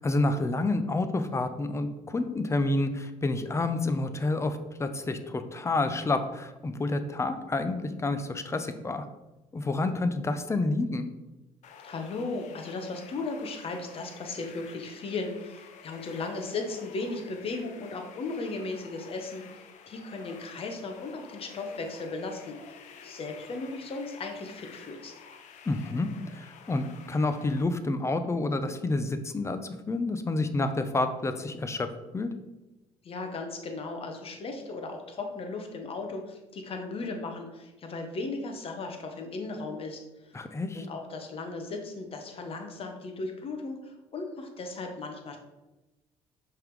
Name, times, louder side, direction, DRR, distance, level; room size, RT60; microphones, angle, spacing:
voice 1, 0.0-9.1 9.5-11.1 25.7-31.9 32.1-32.3 40.3-40.8, left 2 dB, 20° left, 9 dB, 0.6 m, -29 dB
sound 1, 11.6-27.6, left 6 dB, 60° left, 0.7 m, -50 dB
voice 2, 11.8-22.6 23.0-25.1 33.0-40.4 40.7-45.4, left 3 dB, 45° left, 4 dB, 1.1 m, -36 dB
5.6 x 3.6 x 4.7 m, 1.1 s
supercardioid pair, 90°, 14 cm